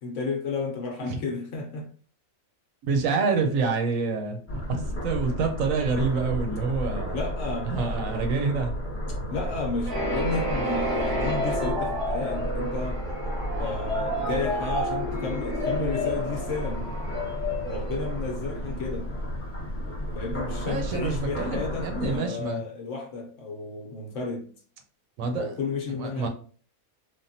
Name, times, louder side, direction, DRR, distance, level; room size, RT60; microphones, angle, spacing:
voice 1, 0.0-1.9 7.1-8.0 9.3-13.0 13.6-17.0 17.7-19.1 20.1-24.5 25.3-26.3, left 4 dB, 65° left, 1.0 m, -32 dB
voice 2, 2.8-4.4 4.7-7.2 7.7-8.8 20.6-22.6 25.2-25.6 26.0-26.3, right 4 dB, 75° right, 1.0 m, -27 dB
sound 1, 4.5-22.2, equal, 15° left, 0.6 m, -33 dB
sound 2, 9.9-18.6, equal, 30° right, 0.7 m, -31 dB
3.4 x 2.2 x 2.6 m
omnidirectional pair, 1.5 m